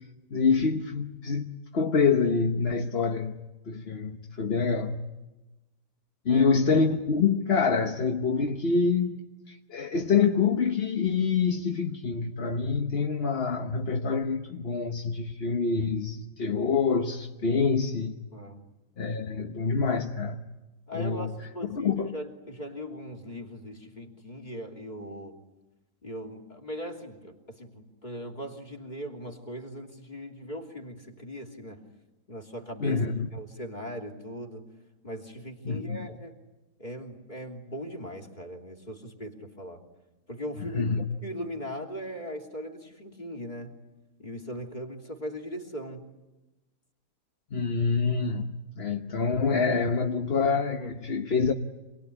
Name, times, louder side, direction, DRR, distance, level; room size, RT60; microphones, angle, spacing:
voice 1, 0.3-5.1 6.2-9.2 9.5-18.1 19.0-20.4 20.9-21.3 21.7-22.2 32.8-33.3 35.6-36.1 40.6-41.1 47.5-51.5, left 5 dB, 40° left, 1.2 m, -26 dB
voice 2, 18.3-18.6 20.9-25.4 26.0-31.8 32.3-33.0 33.3-34.7 35.0-36.3 36.8-39.8 40.3-43.7 44.2-46.1 50.8-50.9, equal, 25° left, 3.2 m, -39 dB
27.5 x 20.5 x 10.0 m
omnidirectional pair, 1.7 m